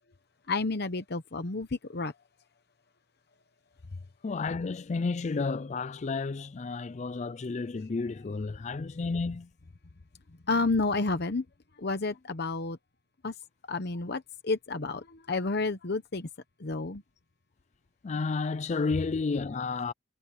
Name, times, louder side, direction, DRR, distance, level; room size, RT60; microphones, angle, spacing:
voice 1, 0.5-2.1 10.5-11.4 11.8-12.8 13.2-13.3 13.7-16.3 16.6-17.0, left 3 dB, 55° left, 0.9 m, -30 dB
voice 2, 4.2-9.5 18.0-19.9, left 4 dB, 35° left, 0.4 m, -31 dB
head